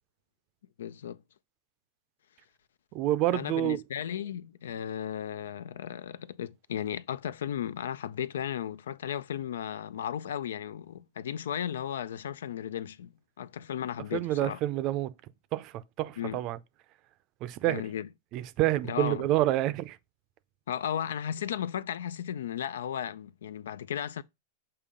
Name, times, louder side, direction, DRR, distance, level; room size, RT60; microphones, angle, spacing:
voice 1, 0.8-1.2 3.3-13.1 13.4-14.6 16.2-16.4 17.7-18.1 18.8-19.2 20.7-24.2, left 9 dB, 85° left, 0.4 m, -35 dB
voice 2, 2.9-3.8 14.1-15.1 15.5-15.7 16.0-16.6 17.4-17.8 18.3-20.0, right 14 dB, 40° right, 0.5 m, -28 dB
6.9 x 2.8 x 5.0 m
supercardioid pair, 145°, 0 cm